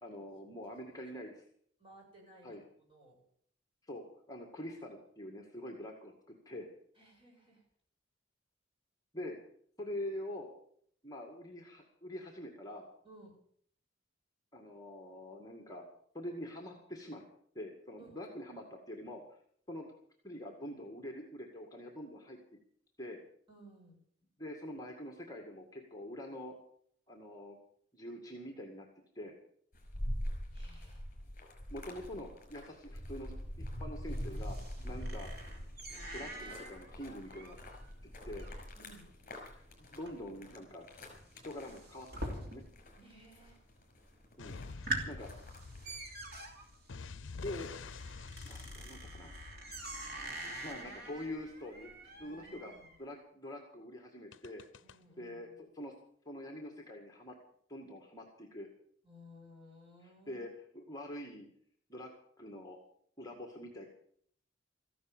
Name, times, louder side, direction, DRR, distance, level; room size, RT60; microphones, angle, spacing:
voice 1, 0.0-1.3 2.4-2.6 3.9-6.7 9.1-9.4 9.8-10.5 11.0-12.9 14.5-15.8 16.1-17.2 17.5-19.2 19.7-19.9 20.2-22.4 23.0-23.2 24.4-26.5 27.1-27.6 27.9-28.9 29.2-29.3 31.7-33.4 33.8-34.6 34.8-35.3 36.1-37.6 38.3-38.5 39.5-40.9 41.4-42.6 44.4-44.8 45.0-45.3 47.4-47.7 48.4-49.4 50.6-52.7 53.0-54.6 55.2-55.5 55.7-55.9 56.3-57.4 57.7-58.7 60.0-60.5 60.7-61.5 61.9-62.1 62.4-62.8 63.2-63.8, left 1 dB, 20° left, 2 dB, 2.0 m, -45 dB
voice 2, 0.7-1.2 1.8-3.2 6.9-7.6 13.0-13.3 18.0-18.2 23.5-24.0 30.5-31.0 34.8-35.0 38.8-39.1 43.0-43.6 52.2-52.9 54.8-55.6 59.0-60.4, equal, 30° right, -2 dB, 8.0 m, -58 dB
sound 1, 29.7-46.6, equal, 45° left, 5.5 m, -44 dB
sound 2, 33.4-43.0 43.2-43.8 44.2-44.3 44.6-53.0, right 2 dB, 55° right, 3.0 m, -45 dB
sound 3, 44.4-50.8 54.3-55.0, left 4 dB, 70° left, 0.6 m, -48 dB
15.0 x 11.5 x 7.3 m, 0.62 s
head